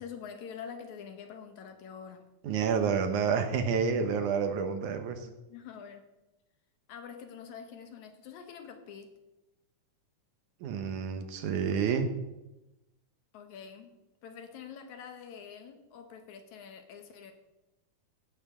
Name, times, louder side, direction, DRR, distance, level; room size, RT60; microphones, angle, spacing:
voice 1, 0.0-2.3 5.2-6.1 6.9-9.1 13.3-13.9 14.2-17.3, left 7 dB, 70° left, 6 dB, 2.6 m, -46 dB
voice 2, 2.4-5.2 10.6-12.1, right 6 dB, 80° right, 7 dB, 2.6 m, -29 dB
15.0 x 11.5 x 3.8 m, 0.98 s
omnidirectional pair, 3.5 m